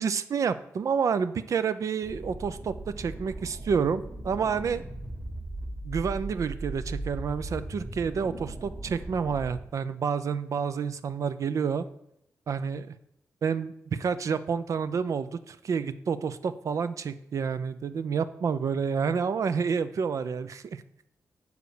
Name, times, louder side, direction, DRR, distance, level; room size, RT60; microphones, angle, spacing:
voice 1, 0.0-4.8 5.8-11.8 12.5-12.9 13.4-20.8, right 6 dB, 60° right, 13 dB, 0.5 m, -29 dB
sound 1, 2.0-9.6, right 2 dB, 25° right, 1.8 m, -38 dB
6.5 x 4.9 x 4.9 m, 0.79 s
cardioid pair, 55°, 6 cm